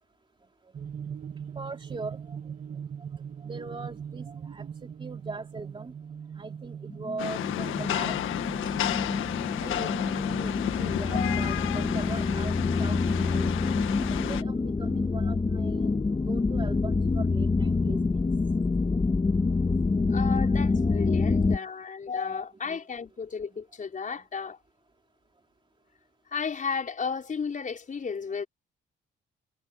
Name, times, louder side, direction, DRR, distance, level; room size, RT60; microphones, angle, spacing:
sound 1, 0.7-11.9, right 7 dB, 45° right, 1.8 m, -42 dB
voice 1, 1.6-2.4 3.4-4.7 5.0-5.9 6.4-8.1 8.8-8.9 9.6-12.5 12.8-13.5 14.1-15.9 16.3-18.0 21.3-21.7 22.3-22.8, right 3 dB, 25° right, 3.8 m, -41 dB
sound 2, 6.9-21.6, left 3 dB, 25° left, 1.9 m, -27 dB
Rain, 7.2-14.4, left 12 dB, 85° left, 1.7 m, -32 dB
voice 2, 20.1-24.6 26.3-28.5, left 5 dB, 40° left, 5.6 m, -33 dB
cardioid pair, 90°, 20 cm